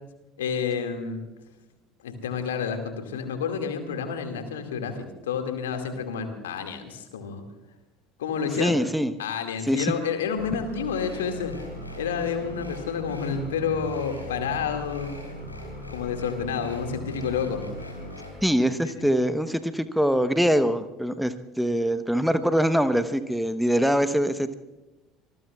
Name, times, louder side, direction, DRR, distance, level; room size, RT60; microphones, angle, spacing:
voice 1, 0.4-1.2 2.0-5.0 5.2-7.4 8.2-8.8 9.2-11.5 12.0-15.2 15.9-17.9 18.8-19.1, left 6 dB, 75° left, 6 dB, 2.2 m, -29 dB
voice 2, 8.6-9.1 9.6-9.9 18.4-24.6, equal, ahead, 10 dB, 1.0 m, -23 dB
sound 1, 10.3-18.3, equal, 90° left, 4.7 m, -39 dB
26.0 x 21.0 x 2.4 m, 1.0 s
figure-of-eight pair, 65°, 0 cm